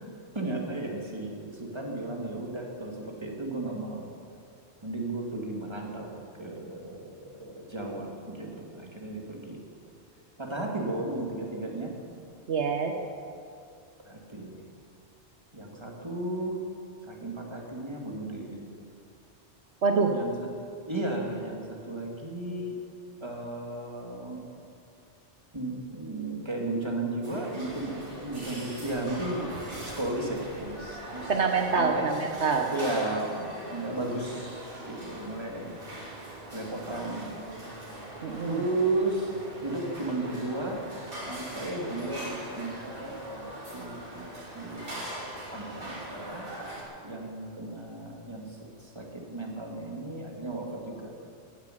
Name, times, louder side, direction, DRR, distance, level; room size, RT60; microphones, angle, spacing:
voice 1, 0.3-4.1 4.8-9.6 10.4-11.9 14.0-14.6 15.5-16.6 17.1-18.6 20.1-20.5 20.8-22.8 23.2-24.5 25.5-31.3 31.7-32.0 32.7-35.8 36.2-37.7 38.4-40.8 41.3-44.3 44.5-46.5 47.0-51.1, right 2 dB, 25° right, 0 dB, 2.4 m, -34 dB
voice 2, 12.5-12.9 19.8-20.1 31.3-32.7 38.2-38.6, right 5 dB, 75° right, 3 dB, 1.4 m, -26 dB
sound 1, 27.2-46.8, right 1 dB, 50° right, 3.3 m, -41 dB
15.0 x 10.5 x 9.2 m, 2.4 s
omnidirectional pair, 1.2 m